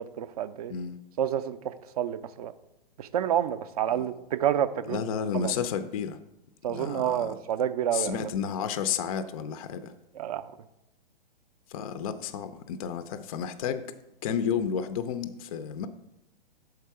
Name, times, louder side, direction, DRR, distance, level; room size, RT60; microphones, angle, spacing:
voice 1, 0.0-0.7 1.2-2.5 3.0-5.0 5.3-5.5 6.6-8.2 10.1-10.5, right 10 dB, 40° right, 13 dB, 0.4 m, -29 dB
voice 2, 0.7-1.0 4.0-4.1 4.9-6.2 6.7-7.3 7.9-9.9 11.7-13.9 14.2-15.9, left 7 dB, 40° left, 11 dB, 0.4 m, -31 dB
6.7 x 4.7 x 4.6 m, 0.89 s
figure-of-eight pair, 120°, 29 cm